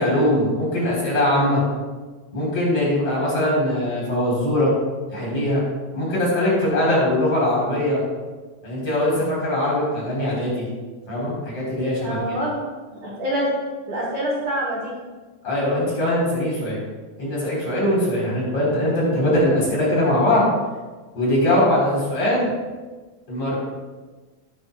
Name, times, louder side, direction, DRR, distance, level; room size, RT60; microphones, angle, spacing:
voice 1, 0.0-1.6 2.3-4.7 5.1-5.6 5.9-8.0 8.6-10.6 11.1-12.2 15.4-16.8 17.2-20.4 21.1-22.5 23.3-23.5, left 1 dB, 50° left, -5 dB, 5.0 m, -21 dB
voice 2, 12.0-12.5 13.0-13.5 13.9-14.9, equal, 35° right, -7 dB, 3.9 m, -25 dB
15.0 x 11.5 x 2.3 m, 1.3 s
omnidirectional pair, 3.4 m